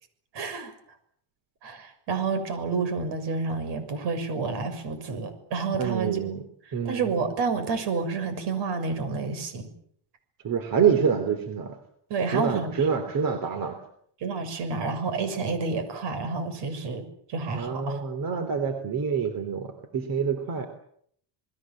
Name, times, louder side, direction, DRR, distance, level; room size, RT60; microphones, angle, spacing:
voice 1, 0.3-0.7 1.6-6.2 6.7-9.6 12.1-12.9 14.2-18.0, right 4 dB, 75° right, 10 dB, 6.5 m, -29 dB
voice 2, 5.8-6.5 6.7-7.1 10.4-11.8 12.3-13.8 17.5-20.7, right 6 dB, 50° right, 9 dB, 3.4 m, -26 dB
28.5 x 20.5 x 7.6 m, 0.66 s
cardioid pair, 130°, 42 cm